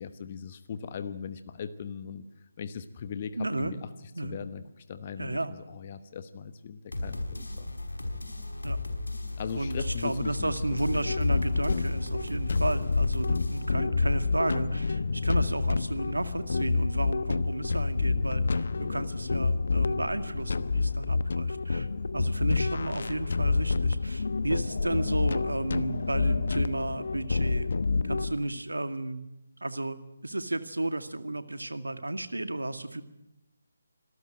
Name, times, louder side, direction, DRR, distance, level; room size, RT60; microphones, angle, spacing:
voice 1, 0.0-2.3 2.6-3.8 4.2-7.7 9.4-11.1, left 7 dB, 35° left, 11 dB, 1.1 m, -39 dB
voice 2, 3.4-3.7 4.1-4.4 5.2-5.5 8.6-8.8 9.5-21.9 22.1-27.7 28.0-29.2 29.6-30.0 30.2-33.0, right 2 dB, 85° right, 10 dB, 2.0 m, -33 dB
sound 1, 6.9-13.7, left 2 dB, 85° left, 5.2 m, -35 dB
sound 2, 10.7-28.3, left 4 dB, 60° left, 1.0 m, -28 dB
26.5 x 13.0 x 9.1 m, 0.91 s
figure-of-eight pair, 155°, 0 cm